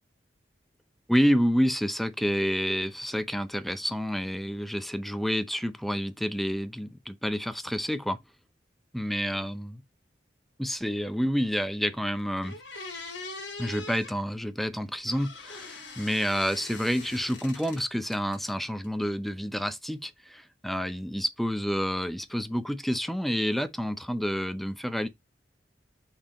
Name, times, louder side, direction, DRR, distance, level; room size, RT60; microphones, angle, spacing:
voice 1, 1.1-8.2 8.9-9.8 10.6-12.6 13.6-25.1, equal, ahead, 0.6 m, -29 dB
sound 1, 11.9-12.0 12.4-14.2 15.1-17.8 18.1-18.9, left 3 dB, 75° left, 2.5 m, -42 dB
5.9 x 4.4 x 4.2 m
head